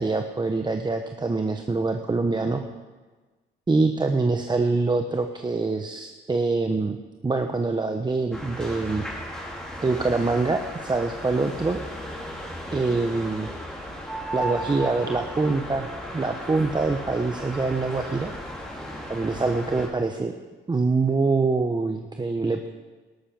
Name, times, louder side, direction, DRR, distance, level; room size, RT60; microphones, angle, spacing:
voice 1, 0.0-2.6 3.7-7.0 7.2-9.0 9.8-11.8 12.7-13.5 14.3-15.9 16.1-18.3 19.1-20.3 20.7-22.7, right 3 dB, 20° right, 5 dB, 0.9 m, -25 dB
sound 1, 8.3-19.9, equal, 5° left, 3.6 m, -35 dB
13.5 x 12.0 x 5.9 m, 1.3 s
cardioid pair, 90°, 20 cm